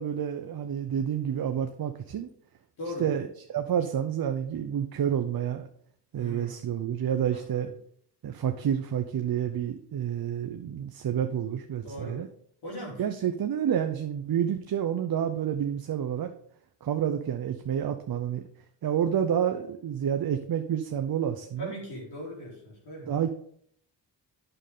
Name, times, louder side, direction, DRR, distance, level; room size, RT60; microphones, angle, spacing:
voice 1, 0.0-2.3 3.0-3.3 3.5-5.7 6.1-7.7 8.2-12.3 13.0-16.3 16.8-18.4 18.8-21.7 23.1-23.3, right 9 dB, 55° right, 7 dB, 0.7 m, -29 dB
voice 2, 2.8-3.2 6.2-6.5 7.3-7.7 11.8-12.2 12.6-13.1 21.6-23.1, equal, 70° left, -3 dB, 3.8 m, -39 dB
8.9 x 6.7 x 3.7 m, 0.64 s
wide cardioid pair, 105°, 43 cm